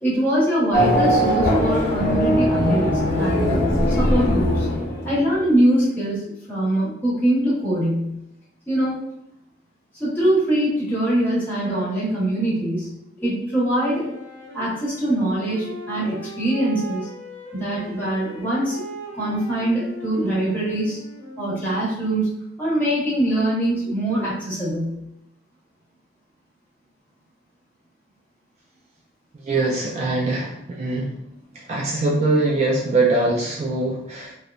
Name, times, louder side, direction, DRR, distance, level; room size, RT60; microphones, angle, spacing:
voice 1, 0.0-3.6 4.0-4.7 5.0-6.2 6.5-8.2 8.7-9.0 10.0-12.9 13.2-14.1 14.5-17.1 17.5-18.8 19.1-21.0 21.4-25.0, right 1 dB, 10° left, -8 dB, 1.0 m, -23 dB
Race car auto racing / Accelerating revving vroom, 0.7-5.4, equal, 60° left, 0.6 m, -20 dB
Wind instrument woodwind instrument, 13.9-21.9, right 1 dB, 90° right, 0.6 m, -39 dB
voice 2, 29.4-31.1 31.5-34.3, right 2 dB, 35° right, -3 dB, 0.3 m, -22 dB
2.9 x 2.1 x 2.4 m, 0.78 s
head